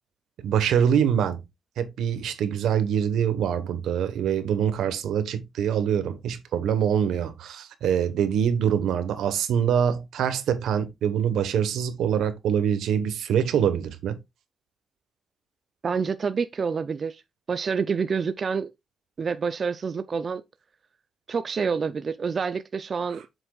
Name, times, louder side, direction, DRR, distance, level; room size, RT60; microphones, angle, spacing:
voice 1, 0.4-1.4 1.8-14.2, right 8 dB, 85° right, 1.2 m, -24 dB
voice 2, 15.8-17.2 17.5-18.7 19.2-20.4 21.3-23.2, right 5 dB, 45° right, 0.5 m, -27 dB
7.9 x 6.3 x 2.4 m
cardioid pair, 110°, 0 cm